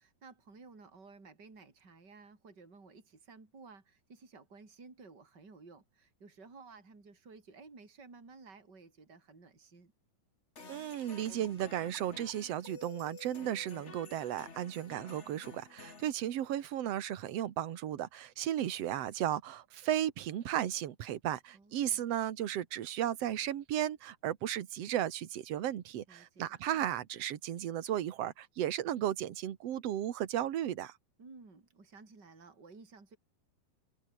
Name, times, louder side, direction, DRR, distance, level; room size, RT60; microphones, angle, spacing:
voice 1, 0.0-9.9 21.5-22.1 26.1-26.6 31.2-33.2, right 4 dB, 25° right, 5.5 m, -55 dB
sound 1, 10.6-16.1, left 4 dB, 25° left, 1.6 m, -51 dB
voice 2, 10.7-30.9, right 11 dB, 55° right, 1.9 m, -35 dB
omnidirectional pair, 4.4 m